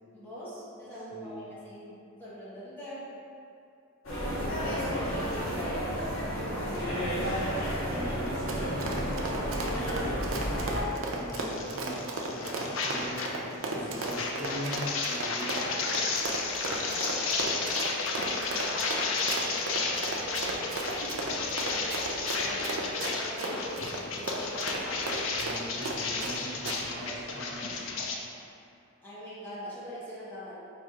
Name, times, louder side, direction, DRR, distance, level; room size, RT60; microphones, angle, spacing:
voice 1, 0.1-3.1 14.1-14.6 15.4-16.1 16.6-17.8 18.5-23.8 24.1-25.0 25.8-26.1 29.0-30.6, equal, 10° left, -11 dB, 1.0 m, -43 dB
voice 2, 1.1-1.5 4.3-7.3 7.6-13.3 13.7-15.8 25.4-27.8, equal, 50° right, -8 dB, 1.2 m, -41 dB
sound 1, 4.0-10.8, equal, 90° left, 1.1 m, -31 dB
Run, 8.2-26.4 26.7-26.8, right 2 dB, 80° right, 0.6 m, -35 dB
sound 2, 11.3-13.4 13.6-28.1, left 4 dB, 70° left, 0.5 m, -33 dB
4.3 x 2.5 x 4.7 m, 2.6 s
head